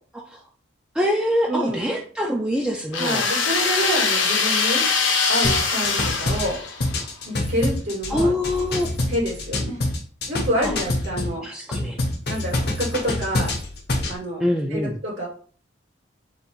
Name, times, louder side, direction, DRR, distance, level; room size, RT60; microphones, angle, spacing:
voice 1, 0.9-3.3 8.1-8.9 10.6-10.7 11.4-12.0 14.4-15.0, left 1 dB, 5° right, -1 dB, 0.4 m, -24 dB
voice 2, 1.5-1.9 3.0-4.8 5.3-6.6 7.2-8.3 9.1-9.8 10.3-11.5 12.3-13.5 14.1-14.5 14.7-15.3, equal, 80° right, -4 dB, 2.2 m, -27 dB
sound 1, 2.9-7.0, left 5 dB, 85° left, 0.8 m, -22 dB
sound 2, 5.4-11.3 11.7-14.2, left 2 dB, 55° left, 0.9 m, -26 dB
3.8 x 2.5 x 4.4 m, 0.44 s
head